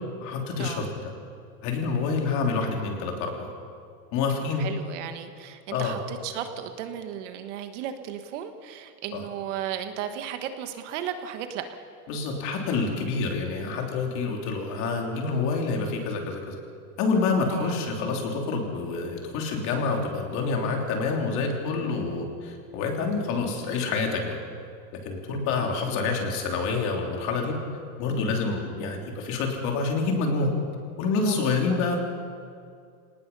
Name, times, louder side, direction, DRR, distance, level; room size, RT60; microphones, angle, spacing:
voice 1, 0.2-1.1 1.6-3.5 4.1-4.7 5.7-6.0 9.1-9.2 12.1-16.6 17.0-24.4 25.0-27.5 28.0-30.5 31.0-32.0, left 4 dB, 35° left, 1 dB, 3.3 m, -27 dB
voice 2, 4.6-11.6 17.5-17.8 31.2-31.3 31.7-31.8, right 10 dB, 50° right, 7 dB, 1.5 m, -35 dB
26.0 x 19.0 x 5.5 m, 2.3 s
supercardioid pair, 170°, 46 cm